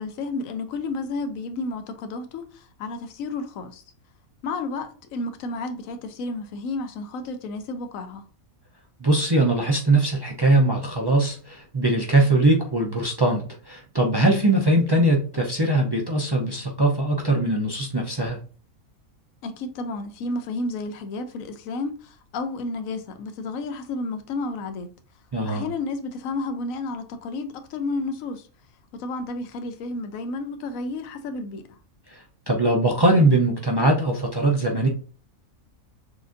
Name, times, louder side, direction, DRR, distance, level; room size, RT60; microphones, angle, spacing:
voice 1, 0.0-3.8 4.4-8.3 19.4-24.9 25.5-28.5 28.9-31.8, left 3 dB, 75° left, 1.1 m, -31 dB
voice 2, 9.0-18.4 25.3-25.7 32.1-34.9, right 2 dB, 35° right, 0.3 m, -21 dB
6.7 x 2.6 x 2.5 m
omnidirectional pair, 1.5 m